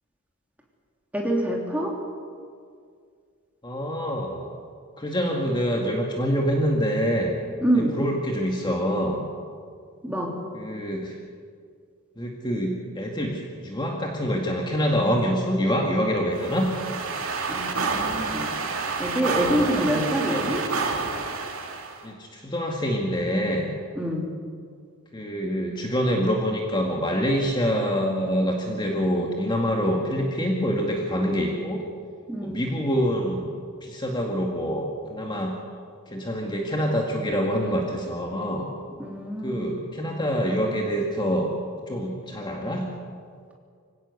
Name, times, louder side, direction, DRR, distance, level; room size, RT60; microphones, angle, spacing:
voice 1, 1.1-1.9 7.6-7.9 10.0-10.3 17.5-18.5 19.0-20.6 23.9-24.3 32.3-32.7 39.0-39.7, right 1 dB, 5° right, -1 dB, 3.3 m, -26 dB
voice 2, 3.6-4.5 5.0-7.4 7.7-9.3 10.5-11.2 12.2-16.7 19.5-20.5 22.0-23.7 25.1-31.8 32.4-33.5 33.8-35.6 36.1-38.7 39.4-41.5 41.9-42.8, equal, 20° left, 0 dB, 2.1 m, -26 dB
sound 1, 16.3-22.0, right 4 dB, 70° right, 2.5 m, -29 dB
25.5 x 17.0 x 8.1 m, 2.2 s
head